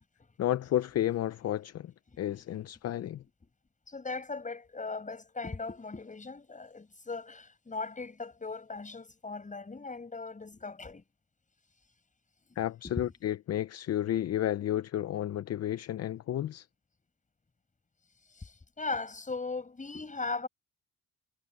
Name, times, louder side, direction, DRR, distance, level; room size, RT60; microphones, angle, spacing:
voice 1, 0.4-1.9 2.2-3.2 12.6-16.7, left 12 dB, 55° left, 0.7 m, -31 dB
voice 2, 3.9-11.0 12.6-13.2 18.3-20.5, left 3 dB, 25° left, 7.0 m, -38 dB
cardioid pair, 90°, 30 cm